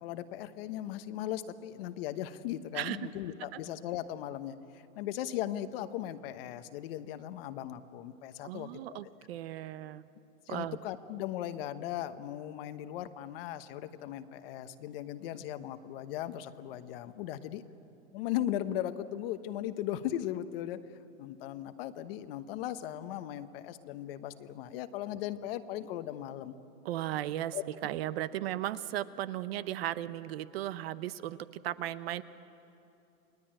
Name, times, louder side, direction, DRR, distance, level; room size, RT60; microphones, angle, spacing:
voice 1, 0.0-9.0 10.5-17.6 18.1-20.8 21.2-26.6 27.5-27.6, left 12 dB, 40° left, 11 dB, 1.1 m, -38 dB
voice 2, 8.4-10.0 10.5-10.8 26.8-27.6 27.8-31.4 31.6-32.2, right 13 dB, 45° right, 15 dB, 0.8 m, -36 dB
29.0 x 20.5 x 8.9 m, 2.8 s
hypercardioid pair, 145°, 42 cm